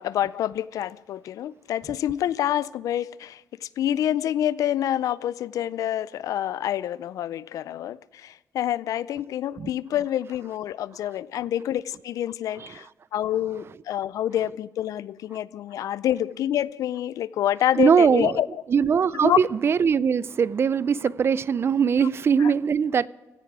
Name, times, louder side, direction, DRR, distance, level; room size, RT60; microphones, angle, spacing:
voice 1, 0.0-12.9 13.1-18.5 19.1-19.4 22.4-22.5, left 11 dB, 80° left, 0.4 m, -27 dB
voice 2, 17.8-18.4 18.7-23.1, right 6 dB, 45° right, 0.4 m, -21 dB
16.0 x 9.9 x 4.7 m
cardioid pair, 90°, 6 cm